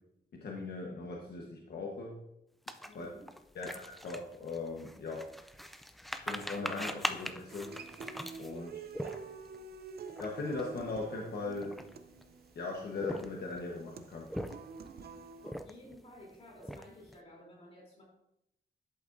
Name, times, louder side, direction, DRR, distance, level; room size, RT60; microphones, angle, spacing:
voice 1, 0.3-2.2 2.9-3.1 3.5-5.2 6.2-7.7 8.4-8.8 10.2-11.8 12.5-14.3, left 3 dB, 75° left, -1 dB, 1.2 m, -39 dB
sound 1, 2.7-9.6 10.1-10.3 10.5-10.8 11.4-12.2 12.9-13.6 14.1-14.9 15.4-16.0 16.3-17.1, equal, ahead, 0.4 m, -41 dB
voice 2, 2.8-3.3 15.4-18.0, left 1 dB, 35° left, -3 dB, 3.3 m, -54 dB
Human voice / Acoustic guitar, 7.5-15.5, right 5 dB, 70° right, 0.6 m, -48 dB
11.0 x 8.0 x 2.6 m, 0.83 s
wide cardioid pair, 175°, 17 cm